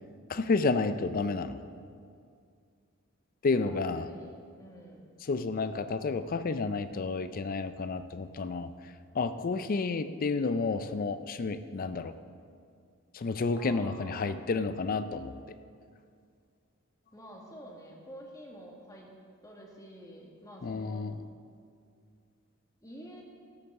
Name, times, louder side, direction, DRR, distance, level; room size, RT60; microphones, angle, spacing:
voice 1, 0.3-1.6 3.4-4.1 5.2-12.2 13.1-15.6 20.6-21.2, left 4 dB, 40° left, 12 dB, 0.4 m, -31 dB
voice 2, 3.5-5.1 13.5-14.4 17.1-19.1 19.4-21.1 22.8-23.2, equal, 15° left, -1 dB, 1.6 m, -49 dB
13.0 x 6.7 x 6.3 m, 2.3 s
head